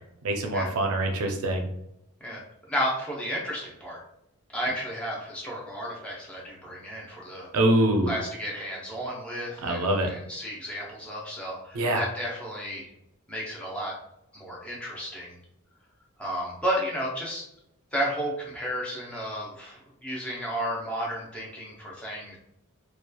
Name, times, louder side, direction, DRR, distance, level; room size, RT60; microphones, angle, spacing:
voice 1, 0.2-1.7 7.5-8.1 9.6-10.1 11.7-12.1, right 1 dB, 75° right, 4 dB, 0.5 m, -24 dB
voice 2, 2.7-4.0 4.5-7.5 8.1-12.9 13.3-13.9 14.3-15.3 16.2-17.4 17.9-22.4, equal, 5° left, -4 dB, 0.6 m, -32 dB
2.9 x 2.2 x 2.2 m, 0.82 s
head